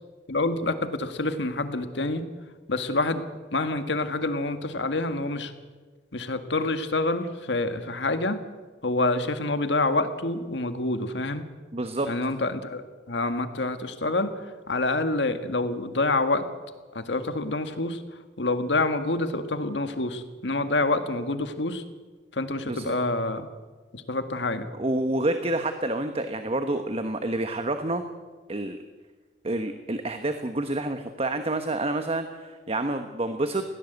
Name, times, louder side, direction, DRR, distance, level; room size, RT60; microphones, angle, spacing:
voice 1, 0.3-2.3 2.7-3.3 3.5-5.5 6.1-8.4 8.8-11.4 12.0-16.5 16.9-18.0 18.4-21.8 22.3-23.5 23.9-24.7, left 2 dB, 75° left, 8 dB, 1.8 m, -27 dB
voice 2, 11.7-12.1 22.7-22.9 24.8-28.1 28.5-28.8 29.4-33.6, right 2 dB, 35° right, 8 dB, 1.1 m, -28 dB
21.5 x 16.5 x 8.2 m, 1.4 s
head